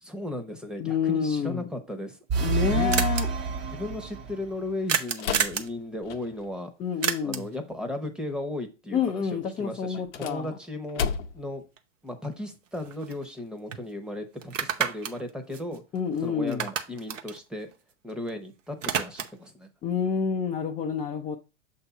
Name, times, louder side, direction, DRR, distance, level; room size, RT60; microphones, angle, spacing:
voice 1, 0.0-2.2 2.6-3.1 3.7-6.7 7.2-11.1 11.3-11.6 12.0-15.8 16.2-17.7 18.0-19.7, left 1 dB, ahead, 0.9 m, -36 dB
voice 2, 0.8-1.7 2.4-3.3 6.8-7.5 8.9-10.6 15.9-16.7 19.8-21.4, left 7 dB, 15° left, 0.4 m, -28 dB
sound 1, 2.0-2.1 2.2-2.3 2.5-2.6 2.9-3.2 4.9-5.7 7.0-7.6 11.8-11.9 12.2-13.4 13.7-13.8 14.4-16.2 16.5-18.3 18.6-19.5, right 8 dB, 90° right, 0.9 m, -30 dB
sound 2, 2.3-4.6, right 4 dB, 30° right, 0.9 m, -28 dB
sound 3, 5.2-6.6 9.9-11.6, left 6 dB, 70° left, 0.8 m, -33 dB
6.7 x 2.8 x 5.6 m
hypercardioid pair, 120°, 37 cm